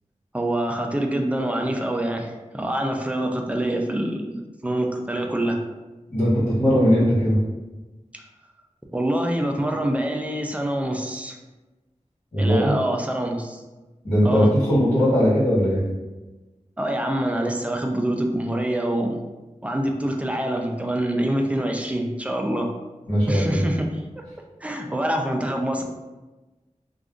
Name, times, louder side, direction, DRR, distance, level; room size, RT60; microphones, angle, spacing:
voice 1, 0.3-5.6 8.1-8.2 8.9-11.4 12.4-13.6 14.2-14.5 16.8-19.2 19.6-22.7 23.3-24.2 24.6-25.8, right 1 dB, 10° right, 2 dB, 0.4 m, -25 dB
voice 2, 6.1-7.4 12.3-12.7 14.0-15.8 23.1-23.6, equal, 45° left, -12 dB, 1.3 m, -19 dB
2.4 x 2.4 x 3.6 m, 1.1 s
wide cardioid pair, 65°, 13 cm